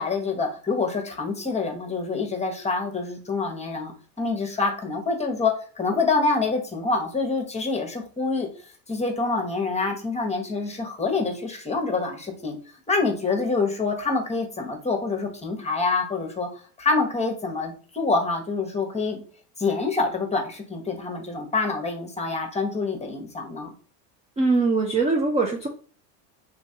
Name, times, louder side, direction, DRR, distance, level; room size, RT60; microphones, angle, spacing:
voice 1, 0.0-8.5 8.9-12.6 12.9-16.5 16.8-19.2 19.6-23.7, left 3 dB, 15° left, 3 dB, 0.9 m, -26 dB
voice 2, 24.4-25.7, right 3 dB, 15° right, 1 dB, 0.4 m, -22 dB
3.1 x 2.7 x 2.8 m, 0.40 s
supercardioid pair, 105°, 48 cm